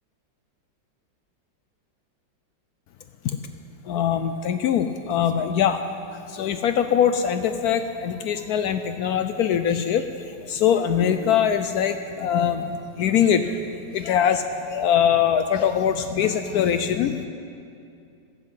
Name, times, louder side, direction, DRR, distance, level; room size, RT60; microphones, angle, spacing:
voice 1, 3.8-17.3, left 8 dB, 75° left, 9 dB, 0.9 m, -23 dB
12.0 x 7.6 x 8.0 m, 2.5 s
omnidirectional pair, 2.0 m